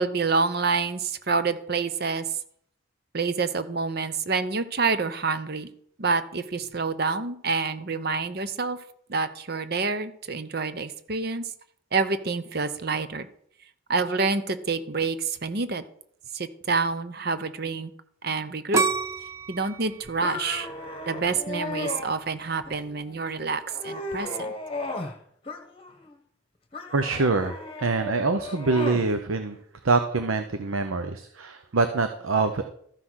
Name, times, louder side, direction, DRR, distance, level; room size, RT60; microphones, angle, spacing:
voice 1, 0.0-2.2 3.1-5.7 6.0-8.8 9.1-11.4 11.9-13.3 13.9-15.8 16.3-17.9 18.2-18.8 19.5-20.7 21.1-24.5, right 4 dB, 50° right, 12 dB, 0.8 m, -27 dB
sound 1, 18.7-21.6 22.2-22.6, right 4 dB, 15° right, 0.6 m, -29 dB
sound 2, 20.2-22.1 22.7-23.2 23.6-25.2 25.5-26.2 26.7-29.1, left 2 dB, 25° left, 1.2 m, -35 dB
voice 2, 26.9-29.6 29.8-32.6, right 3 dB, 85° right, 8 dB, 0.8 m, -25 dB
13.5 x 5.9 x 6.3 m, 0.66 s
head